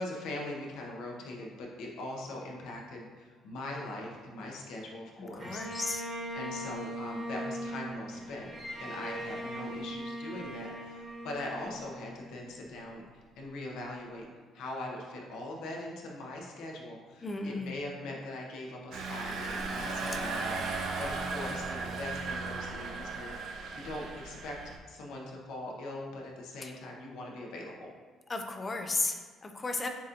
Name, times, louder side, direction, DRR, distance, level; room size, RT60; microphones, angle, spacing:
voice 1, 0.0-5.6 5.9-8.5 8.8-14.3 14.5-24.6 24.9-27.9, left 1 dB, 80° left, -1 dB, 0.8 m, -41 dB
voice 2, 5.3-6.0 17.2-17.8 26.6-26.7 28.3-29.9, left 3 dB, 20° left, 5 dB, 0.3 m, -34 dB
Bowed string instrument, 5.4-12.6, right 1 dB, 20° right, 1.0 m, -40 dB
Engine, 18.9-24.8, right 3 dB, 60° right, 0.6 m, -36 dB
7.0 x 2.5 x 2.8 m, 1.4 s
cardioid pair, 155°, 0 cm